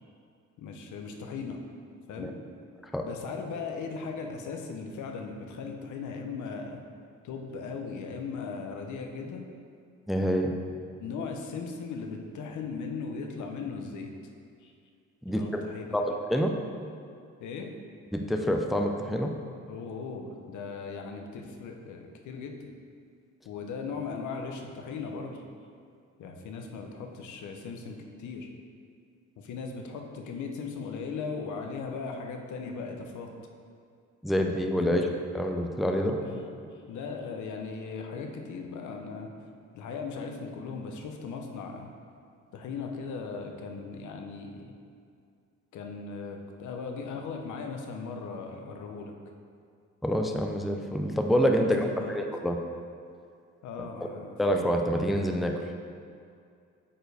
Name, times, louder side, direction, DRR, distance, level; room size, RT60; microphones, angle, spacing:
voice 1, 0.6-1.6 2.1-2.3 3.0-6.8 7.2-9.5 11.0-14.1 14.6-14.7 15.3-16.0 17.4-17.7 19.7-22.8 23.4-25.4 26.2-28.5 29.4-33.3 34.9-35.0 36.2-39.3 39.7-41.9 42.5-44.7 45.7-49.1 51.6-52.2 53.6-54.4, left 5 dB, 75° left, 3 dB, 0.8 m, -38 dB
voice 2, 10.1-10.5 15.3-15.6 15.9-16.5 18.1-19.3 34.2-35.0 35.3-36.2 50.0-52.6 54.4-55.5, equal, ahead, 3 dB, 0.5 m, -27 dB
8.8 x 4.4 x 3.4 m, 2.3 s
cardioid pair, 90°, 30 cm